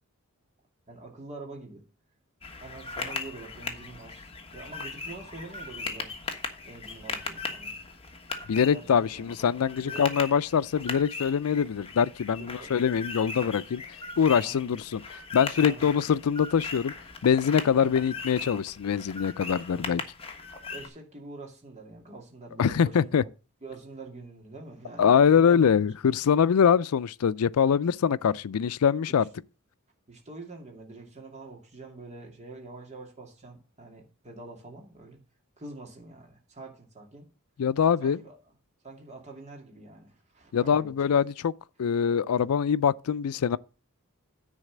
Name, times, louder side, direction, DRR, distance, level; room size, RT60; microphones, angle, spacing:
voice 1, 0.9-1.8 2.6-6.1 6.6-7.7 8.7-9.3 9.8-10.1 12.4-12.7 13.3-13.6 14.4-14.7 15.6-16.0 19.7-20.0 20.7-23.3 23.6-25.8 30.1-35.2 35.6-37.3 38.0-38.4 38.8-40.9, right 2 dB, 30° right, 2.4 m, -45 dB
sound 1, 2.4-20.9, left 4 dB, 25° left, 1.3 m, -39 dB
voice 2, 8.5-13.8 14.2-16.9 17.2-20.0 22.6-23.2 25.0-29.3 37.6-38.2 40.5-41.5 41.8-43.6, left 7 dB, 80° left, 0.4 m, -24 dB
9.8 x 4.1 x 7.2 m
head